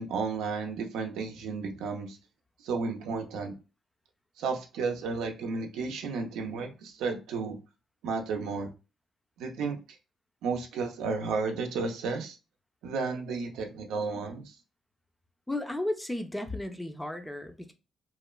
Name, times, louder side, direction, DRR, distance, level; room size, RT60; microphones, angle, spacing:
voice 1, 0.0-2.2 2.6-3.5 4.4-7.6 8.0-8.7 9.4-9.8 10.4-12.4 12.8-14.5, right 4 dB, 90° right, 0.5 m, -32 dB
voice 2, 15.5-17.7, left 1 dB, 10° left, 0.4 m, -34 dB
3.0 x 2.1 x 2.3 m
cardioid pair, 90°, 0 cm